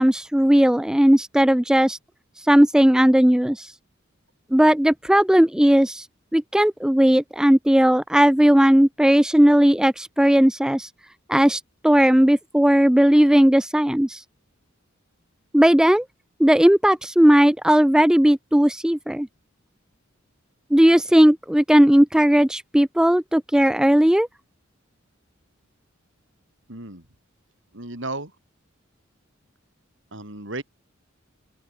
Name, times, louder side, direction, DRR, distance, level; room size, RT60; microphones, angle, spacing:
voice 1, 0.0-2.0 2.5-3.7 4.5-6.1 6.3-10.9 11.3-14.2 15.5-16.0 16.4-19.3 20.7-24.3, equal, 5° right, 0.4 m, -17 dB
voice 2, 26.7-27.1 27.7-28.3 30.1-30.6, right 2 dB, 65° right, 5.6 m, -34 dB
open air
head